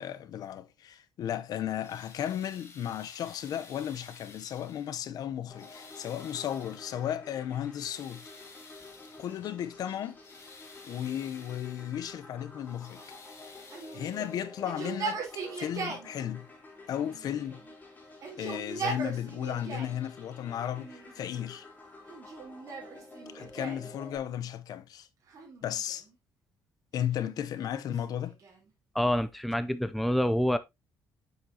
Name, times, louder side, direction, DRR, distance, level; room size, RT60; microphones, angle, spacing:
voice 1, 0.0-8.3 9.2-10.2 10.8-13.0 13.9-16.5 16.9-17.6 18.4-21.7 23.3-25.1 25.6-26.1 26.9-28.4, left 10 dB, 60° left, 0.8 m, -35 dB
sound 1, 1.6-5.1 5.5-7.1 7.5-9.5 10.0-12.0 12.5-14.6 15.7-15.8 16.4-16.5, left 4 dB, 40° left, 2.6 m, -53 dB
sound 2, 5.5-24.2, left 2 dB, 25° left, 3.4 m, -50 dB
Yell, 13.7-16.1 17.0-17.7 18.1-20.0 20.7-21.4 22.1-23.9 25.3-26.1 27.0-28.7, right 4 dB, 50° right, 3.7 m, -40 dB
voice 2, 28.9-30.6, equal, ahead, 0.5 m, -27 dB
7.9 x 6.7 x 2.8 m
cardioid pair, 125°, 7 cm